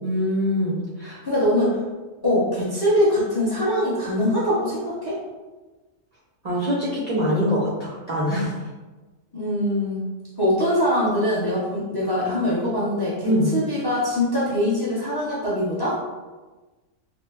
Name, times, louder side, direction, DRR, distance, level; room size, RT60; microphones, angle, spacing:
voice 1, 0.0-1.2 6.4-8.5 13.2-13.5, equal, 45° right, -8 dB, 0.5 m, -23 dB
voice 2, 1.2-1.8 2.2-5.2 9.3-10.1 10.4-16.0, left 1 dB, 25° left, -8 dB, 0.6 m, -23 dB
3.0 x 2.0 x 3.3 m, 1.2 s
omnidirectional pair, 1.3 m